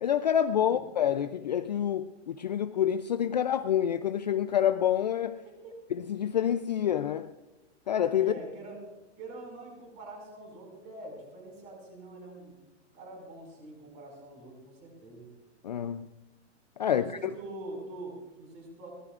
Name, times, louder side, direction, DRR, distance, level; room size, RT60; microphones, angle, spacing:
voice 1, 0.0-5.4 6.0-7.3 7.9-8.3 15.6-16.1 16.8-17.3, left 9 dB, 40° left, 0.4 m, -27 dB
voice 2, 8.2-8.8 9.2-12.6 12.9-15.3 16.9-18.9, right 2 dB, 25° right, 5.4 m, -44 dB
23.5 x 18.5 x 2.4 m
supercardioid pair, 180°, 36 cm